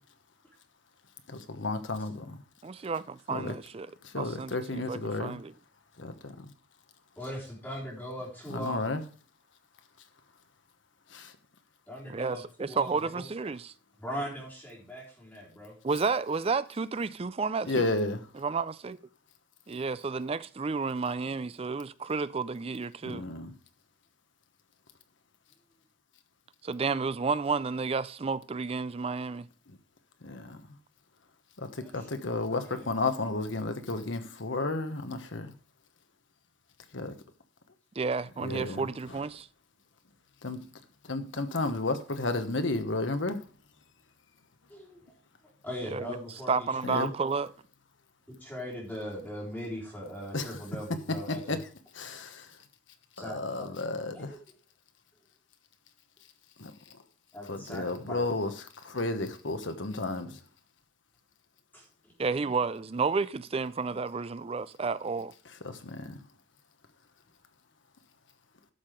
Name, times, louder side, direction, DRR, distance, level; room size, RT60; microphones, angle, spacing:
voice 1, 1.3-2.4 3.3-3.5 4.0-5.4 6.0-6.5 8.5-9.0 11.1-11.3 17.6-18.2 23.0-23.5 29.7-29.8 30.2-30.6 31.6-35.5 36.9-37.1 38.4-39.2 40.4-40.6 41.0-43.5 46.8-47.1 50.3-50.6 51.3-51.6 51.9-52.6 53.2-54.4 56.6-57.0 57.5-60.4 65.6-66.2, left 2 dB, 75° left, 1.2 m, -33 dB
voice 2, 2.6-3.9 4.2-5.5 12.1-13.7 15.8-17.9 18.4-19.0 19.7-23.2 26.6-29.5 38.0-39.5 45.9-46.2 46.5-47.5 62.2-65.3, right 4 dB, 30° right, 0.4 m, -31 dB
voice 3, 7.2-8.8 11.9-13.2 14.0-15.7 31.8-32.1 32.5-32.9 44.7-45.1 45.6-47.1 48.4-51.6 53.2-53.8 54.1-54.4 57.3-58.2 61.7-61.9, equal, 10° left, 3.9 m, -40 dB
11.5 x 5.9 x 5.1 m
head